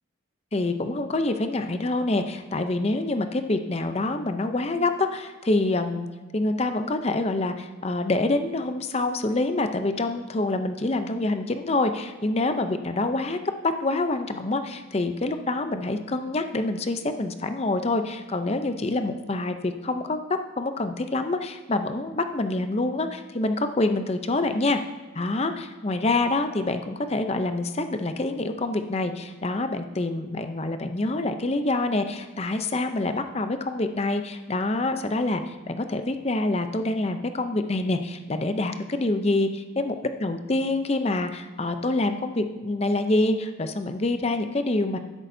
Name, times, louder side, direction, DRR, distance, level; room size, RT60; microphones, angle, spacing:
voice 1, 0.5-6.1 6.3-20.2 20.6-24.8 25.1-45.0, left 2 dB, 30° left, 8 dB, 0.6 m, -26 dB
12.0 x 10.5 x 2.7 m, 1.3 s
head